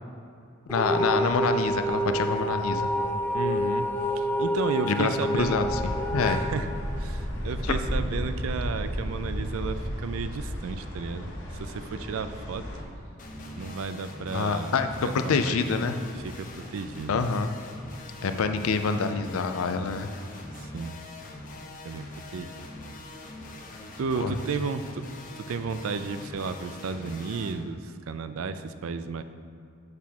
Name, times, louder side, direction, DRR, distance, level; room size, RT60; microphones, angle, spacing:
voice 1, 0.7-2.8 4.8-5.8 6.1-6.4 7.6-7.7 14.3-15.9 17.1-17.5 18.2-20.1 24.2-24.3, left 4 dB, 80° left, 8 dB, 0.4 m, -26 dB
sound 1, 0.7-7.6, equal, 10° left, 0.3 m, -28 dB
voice 2, 3.3-3.9 4.1-5.6 6.2-6.7 7.0-12.7 13.6-14.8 15.2-15.6 16.2-17.3 18.4-18.6 20.6-21.0 21.8-22.7 24.0-25.0 25.4-29.2, right 5 dB, 75° right, 10 dB, 0.4 m, -33 dB
sound 2, 5.3-12.8, equal, 55° left, 1.2 m, -33 dB
sound 3, 13.2-27.5, left 2 dB, 40° left, 0.7 m, -43 dB
6.6 x 3.5 x 5.9 m, 2.4 s
head